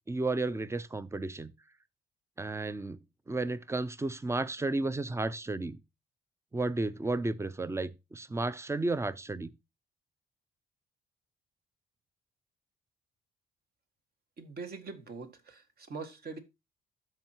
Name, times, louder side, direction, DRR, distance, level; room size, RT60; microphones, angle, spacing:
voice 1, 0.1-1.5 2.4-3.0 3.3-5.8 6.5-9.5, right 2 dB, 15° right, 0.6 m, -33 dB
voice 2, 14.4-16.4, right 4 dB, 50° right, 1.9 m, -43 dB
13.0 x 4.5 x 2.9 m
cardioid pair, 90°, 20 cm